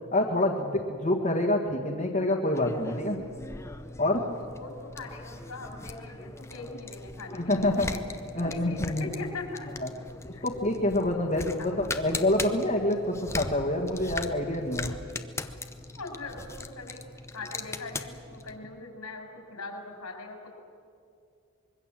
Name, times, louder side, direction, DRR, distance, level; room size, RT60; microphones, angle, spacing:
voice 1, 0.1-3.2 4.0-4.2 7.3-7.9 8.3-9.1 9.8-9.9 10.4-14.9, left 1 dB, 40° left, -2 dB, 1.8 m, -27 dB
sound 1, 2.5-18.6, left 2 dB, 10° left, 0.7 m, -40 dB
voice 2, 4.3-8.0 8.4-9.7 10.3-10.4 11.6-11.8 16.0-17.0 17.3-20.5, left 3 dB, 90° left, 2 dB, 5.2 m, -41 dB
25.0 x 22.5 x 7.6 m, 2.5 s
head